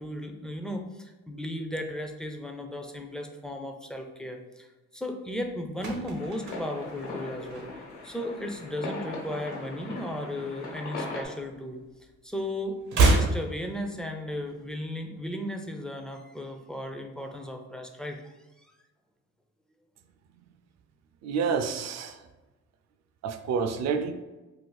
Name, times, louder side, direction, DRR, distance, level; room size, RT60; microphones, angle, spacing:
voice 1, 0.0-4.7 4.9-7.7 8.0-11.8 12.2-18.3, left 1 dB, ahead, 3 dB, 0.3 m, -35 dB
sound 1, 5.4-8.1 8.4-8.7 9.0-10.4 10.7-12.1 12.3-14.4 14.7-14.8, right 3 dB, 80° right, 0.8 m, -29 dB
sound 2, 6.2-11.3, left 2 dB, 70° left, 1.1 m, -39 dB
voice 2, 21.2-22.2 23.2-24.1, right 5 dB, 60° right, 8 dB, 0.4 m, -28 dB
2.6 x 2.4 x 3.8 m, 1.1 s
cardioid pair, 90°, 30 cm